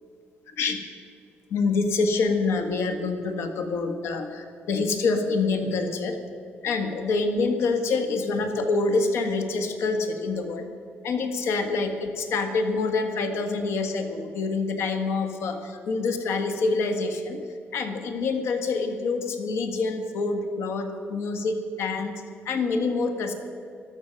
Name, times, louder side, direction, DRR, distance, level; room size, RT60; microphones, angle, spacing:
voice 1, 1.5-6.2 6.6-10.7 11.0-17.4 17.7-23.3, left 3 dB, 80° left, 6 dB, 1.6 m, -26 dB
13.5 x 12.5 x 6.4 m, 2.7 s
cardioid pair, 125°, 4 cm